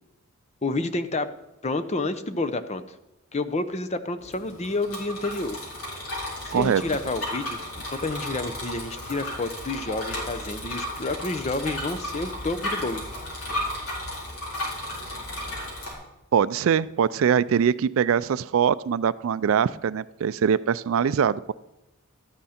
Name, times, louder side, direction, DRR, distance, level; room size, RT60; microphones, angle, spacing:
voice 1, 0.6-1.3 1.6-2.8 3.3-5.6 6.4-7.6 7.9-13.0, left 2 dB, 30° left, 11 dB, 0.6 m, -29 dB
Bicycle, 4.2-15.9, left 1 dB, 80° left, 4.0 m, -34 dB
voice 2, 6.5-6.8 15.6-15.7 16.3-21.5, right 7 dB, 65° right, 17 dB, 0.3 m, -23 dB
13.0 x 9.9 x 4.3 m, 0.91 s
head